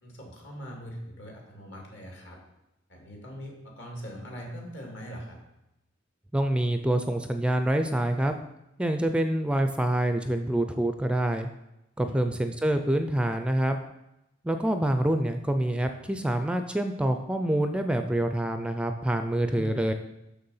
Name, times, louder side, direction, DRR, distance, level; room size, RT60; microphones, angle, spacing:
voice 1, 0.0-2.4 2.9-5.4 12.0-12.4 19.4-19.9, equal, 65° left, 0 dB, 2.3 m, -41 dB
voice 2, 6.3-8.3 8.8-11.5 12.0-13.8 14.4-19.9, right 1 dB, 5° right, 7 dB, 0.4 m, -26 dB
6.6 x 6.4 x 5.5 m, 0.90 s
head